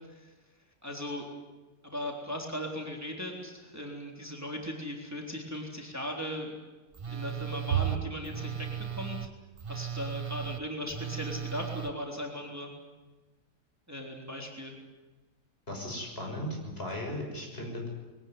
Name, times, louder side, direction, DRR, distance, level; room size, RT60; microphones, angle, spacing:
voice 1, 0.8-1.2 1.8-6.5 7.1-9.3 9.7-12.7 13.9-14.8, left 1 dB, 10° right, 1 dB, 3.5 m, -38 dB
Telephone, 6.9-11.9, right 9 dB, 40° right, 0.4 m, -38 dB
Bowed string instrument, 7.7-10.2, right 11 dB, 60° right, 1.4 m, -35 dB
voice 2, 15.7-17.9, left 1 dB, 35° left, 1 dB, 6.5 m, -37 dB
22.0 x 18.5 x 9.6 m, 1.2 s
omnidirectional pair, 1.7 m